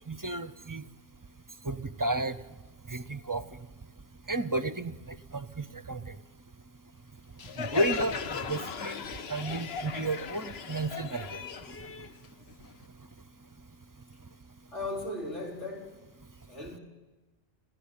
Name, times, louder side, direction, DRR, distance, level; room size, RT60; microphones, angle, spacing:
voice 1, 0.1-0.8 1.6-2.4 2.9-3.4 4.3-6.2 7.6-8.1 8.5-9.0 9.3-11.8, right 2 dB, 20° right, 0.6 m, -32 dB
Crowd, 7.4-12.8, left 6 dB, 65° left, 1.1 m, -37 dB
voice 2, 14.7-16.0 16.5-16.8, left 2 dB, 90° left, 4.5 m, -37 dB
27.5 x 15.5 x 8.8 m
omnidirectional pair, 1.2 m